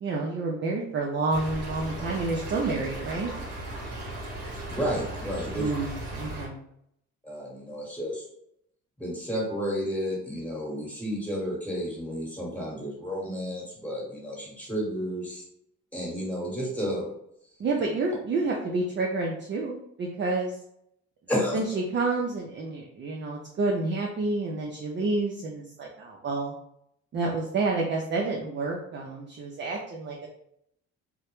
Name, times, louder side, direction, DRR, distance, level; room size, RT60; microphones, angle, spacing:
voice 1, 0.0-3.3 5.5-6.6 17.6-20.6 21.5-26.5 27.1-30.3, right 3 dB, 40° right, -1 dB, 0.4 m, -29 dB
Stream / Trickle dribble, 1.3-6.5, right 1 dB, 55° right, 1.0 m, -37 dB
voice 2, 4.7-5.8 7.2-8.2 9.0-15.4 15.9-17.1 21.3-21.6, equal, 5° left, -4 dB, 1.1 m, -31 dB
2.1 x 2.0 x 3.0 m, 0.74 s
cardioid pair, 90°, 30 cm